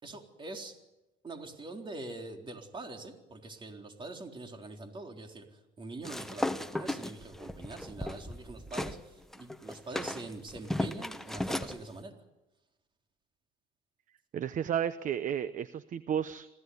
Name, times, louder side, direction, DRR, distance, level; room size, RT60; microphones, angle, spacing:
voice 1, 0.0-0.8 1.2-12.2, right 2 dB, 30° right, 4 dB, 4.0 m, -44 dB
sound 1, 6.0-9.0 9.3-11.8, left 1 dB, ahead, 1.3 m, -35 dB
voice 2, 14.3-16.5, right 9 dB, 50° right, 14 dB, 0.9 m, -32 dB
27.0 x 16.5 x 9.6 m, 1.0 s
cardioid pair, 110°, 17 cm